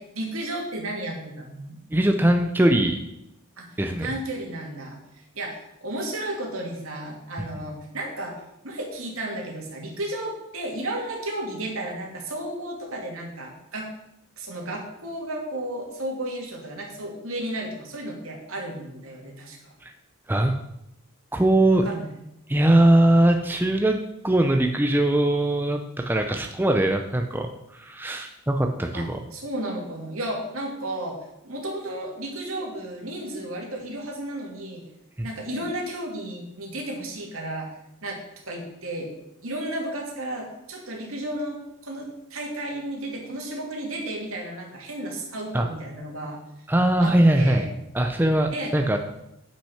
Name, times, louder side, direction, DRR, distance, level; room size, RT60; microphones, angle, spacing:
voice 1, 0.0-1.8 3.6-3.7 4.0-5.0 5.3-13.9 14.4-19.7 21.8-22.0 28.9-31.2 31.4-34.8 35.2-37.7 38.0-39.1 39.4-46.4 47.0-47.7 48.5-48.7, right 1 dB, 75° right, 0 dB, 2.5 m, -33 dB
voice 2, 1.9-3.0 3.8-4.1 19.8-19.9 20.3-20.5 21.3-21.8 22.5-24.0 24.2-27.5 27.7-29.2 35.2-35.3 45.5-45.7 46.7-47.7 47.9-49.0, right 1 dB, 10° right, 4 dB, 0.5 m, -21 dB
8.7 x 5.9 x 5.8 m, 0.84 s
head